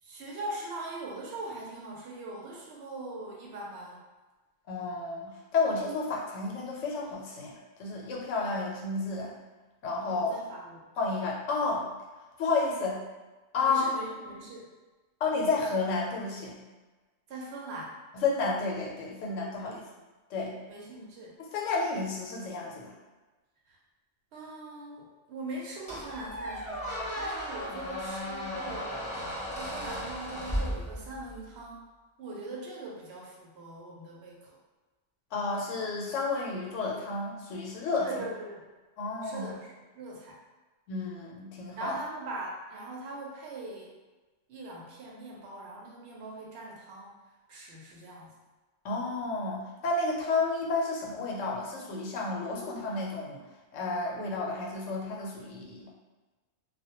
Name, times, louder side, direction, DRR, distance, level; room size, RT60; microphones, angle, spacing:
voice 1, 0.0-4.0 10.1-10.9 13.6-14.7 17.3-18.0 19.6-19.8 20.7-21.4 23.7-23.8 24.3-29.0 29.6-31.8 32.2-34.6 38.0-38.7 39.2-40.4 41.8-43.9 44.5-47.2 47.5-48.4, right 2 dB, 70° right, -3 dB, 0.8 m, -41 dB
voice 2, 4.7-7.5 7.8-9.4 9.8-10.4 11.0-11.9 12.4-13.0 13.5-13.9 15.2-16.6 18.2-19.8 20.3-20.6 21.5-22.9 35.3-38.1 39.0-39.5 40.9-41.9 48.8-53.4 53.7-55.9, left 3 dB, 90° left, -2 dB, 0.9 m, -31 dB
Squeak, 25.9-31.4, equal, 5° left, 0.6 m, -35 dB
2.2 x 2.1 x 2.8 m, 1.2 s
omnidirectional pair, 1.2 m